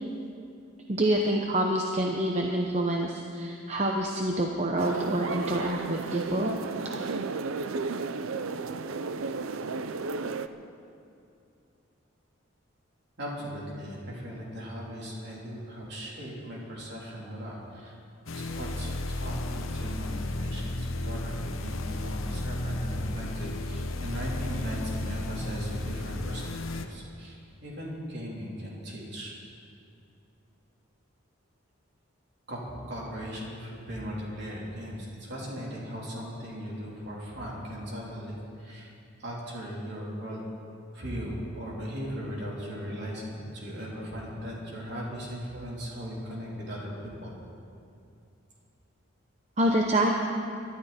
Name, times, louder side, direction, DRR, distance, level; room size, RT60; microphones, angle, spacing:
voice 1, 0.9-6.5 49.6-50.1, right 1 dB, 30° right, 1 dB, 0.8 m, -27 dB
sound 1, 4.8-10.5, right 4 dB, 75° right, 0.6 m, -33 dB
voice 2, 13.2-18.0 18.3-29.3 32.5-38.9 39.2-40.4 40.9-47.3, equal, 50° right, -5 dB, 3.7 m, -38 dB
sound 2, 18.3-26.9, left 2 dB, 75° left, 0.9 m, -33 dB
23.0 x 12.0 x 4.4 m, 2.6 s
head